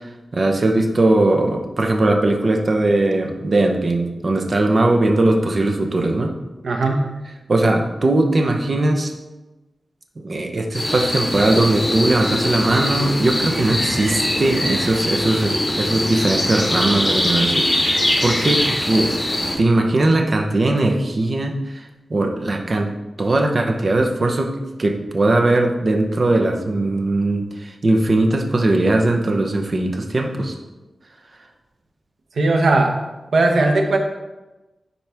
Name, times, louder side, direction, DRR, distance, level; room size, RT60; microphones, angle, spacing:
voice 1, 0.3-6.3 7.5-9.1 10.2-19.1 19.6-22.9 23.2-24.5 24.8-30.5, right 2 dB, 45° right, 3 dB, 0.9 m, -19 dB
voice 2, 6.6-7.1 32.3-33.0 33.3-34.0, right 2 dB, 85° right, 3 dB, 1.0 m, -17 dB
sound 1, 10.7-19.6, left 1 dB, 25° left, 2.6 m, -22 dB
10.5 x 4.1 x 3.5 m, 1.1 s
wide cardioid pair, 120°, 0 cm